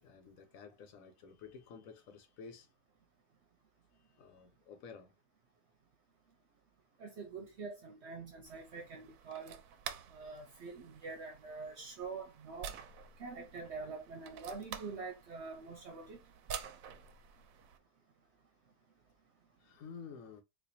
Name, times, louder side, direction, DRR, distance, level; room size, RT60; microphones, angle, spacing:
voice 1, 0.0-2.7 4.2-5.1 19.6-20.4, left 5 dB, 85° left, 1.2 m, -52 dB
voice 2, 7.0-9.6 10.1-12.7 13.2-16.2, right 4 dB, 60° right, 0.9 m, -45 dB
sound 1, 8.5-17.8, right 8 dB, 85° right, 1.0 m, -49 dB
4.2 x 2.6 x 2.6 m
omnidirectional pair, 1.4 m